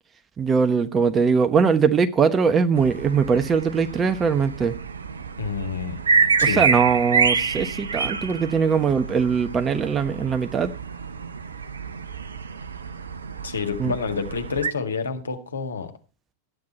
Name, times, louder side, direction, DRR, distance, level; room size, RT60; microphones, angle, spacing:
voice 1, 0.4-4.7 6.4-10.7 13.8-13.9, right 6 dB, 20° right, 1.1 m, -21 dB
sound 1, 2.8-14.7, right 5 dB, 70° right, 0.7 m, -27 dB
voice 2, 5.4-6.0 6.4-6.6 13.4-15.9, left 5 dB, 70° left, 1.8 m, -28 dB
13.0 x 9.7 x 4.3 m
figure-of-eight pair, 90°, 0 cm